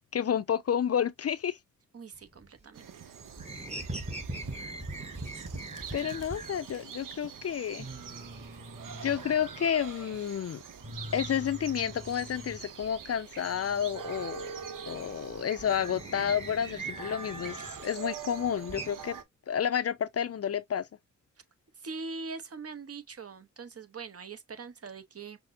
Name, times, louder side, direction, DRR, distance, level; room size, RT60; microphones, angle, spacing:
voice 1, 0.1-1.6 5.9-7.9 9.0-10.6 11.1-14.5 14.9-19.2 19.5-20.9, left 8 dB, 50° left, 0.4 m, -30 dB
voice 2, 1.9-2.9 21.8-25.4, right 4 dB, 50° right, 0.8 m, -42 dB
sound 1, 2.1-2.9 3.2-6.6 7.0-7.1 7.4-7.5 7.7-10.2 10.5-13.1 13.4-17.9 18.2-18.9, right 1 dB, 20° right, 1.1 m, -42 dB
sound 2, 2.7-19.2, right 7 dB, 90° right, 0.7 m, -44 dB
5.7 x 2.0 x 2.5 m
cardioid pair, 65°, 31 cm